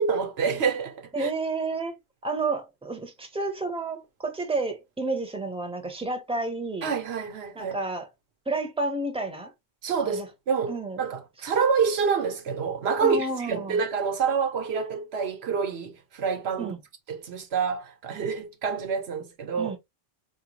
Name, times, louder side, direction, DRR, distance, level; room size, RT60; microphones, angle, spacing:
voice 1, 0.0-1.3 6.8-7.8 9.8-16.7 17.1-19.7, right 6 dB, 90° right, 1.1 m, -27 dB
voice 2, 1.1-6.9 7.5-8.1 8.5-9.5 10.0-10.3 10.7-11.0 13.0-13.8 16.6-16.8 19.6-19.8, right 3 dB, 5° right, 0.9 m, -31 dB
4.5 x 2.4 x 2.9 m
omnidirectional pair, 1.1 m